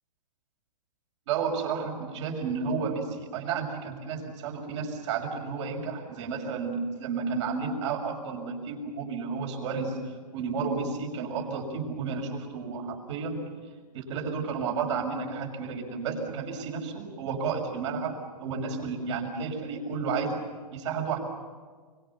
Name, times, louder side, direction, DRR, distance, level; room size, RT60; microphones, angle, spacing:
voice 1, 1.3-13.4 13.9-20.4 20.7-21.2, right 5 dB, 45° right, 2 dB, 6.4 m, -32 dB
25.5 x 25.5 x 7.1 m, 1.5 s
hypercardioid pair, 150°, 21 cm